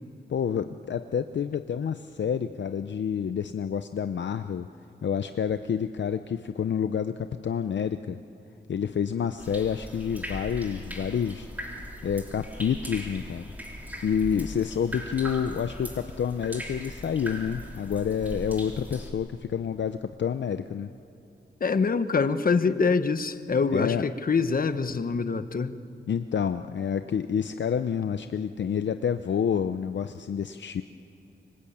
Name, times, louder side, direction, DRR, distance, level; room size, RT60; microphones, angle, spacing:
voice 1, 0.3-4.7 5.0-8.2 8.7-11.5 12.0-13.4 14.0-20.9 23.7-24.0 26.1-30.8, left 7 dB, 65° left, 9 dB, 0.7 m, -28 dB
sound 1, 9.4-19.1, equal, 10° right, 3.7 m, -39 dB
voice 2, 21.6-25.8, left 5 dB, 45° left, 11 dB, 1.1 m, -25 dB
26.5 x 25.0 x 8.6 m, 2.7 s
wide cardioid pair, 110°, 20 cm